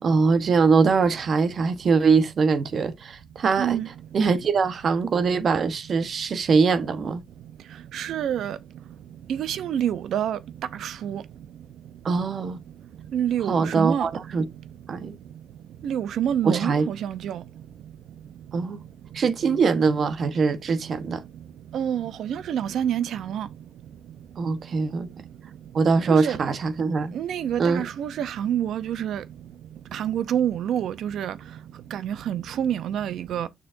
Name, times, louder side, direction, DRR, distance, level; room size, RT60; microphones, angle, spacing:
voice 1, 0.0-3.8 4.1-7.2 12.0-12.6 13.5-14.5 14.9-15.2 16.4-16.9 18.5-18.8 19.1-21.2 24.4-25.1 25.7-27.2 27.6-27.8, right 5 dB, 50° right, 1.2 m, -22 dB
voice 2, 3.6-3.9 7.9-8.6 9.3-10.4 10.8-11.2 13.1-14.1 15.8-17.4 21.7-23.5 26.1-26.4 27.1-29.2 29.9-31.3 31.9-33.5, right 10 dB, 75° right, 0.7 m, -27 dB
6.7 x 6.5 x 2.6 m
cardioid pair, 90°, 0 cm